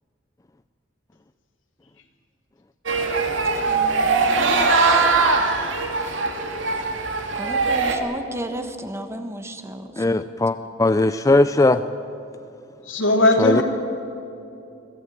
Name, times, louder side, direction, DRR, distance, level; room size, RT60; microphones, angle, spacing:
sound 1, 2.9-8.0, right 4 dB, 80° right, 2.5 m, -21 dB
voice 1, 3.5-5.1 7.3-10.0, right 1 dB, 15° right, 7 dB, 1.4 m, -34 dB
voice 2, 10.0-11.8 13.4-13.6, left 2 dB, 15° left, 11 dB, 0.4 m, -18 dB
voice 3, 12.8-13.6, left 1 dB, 90° left, 3 dB, 2.9 m, -18 dB
23.5 x 15.5 x 9.3 m, 2.7 s
head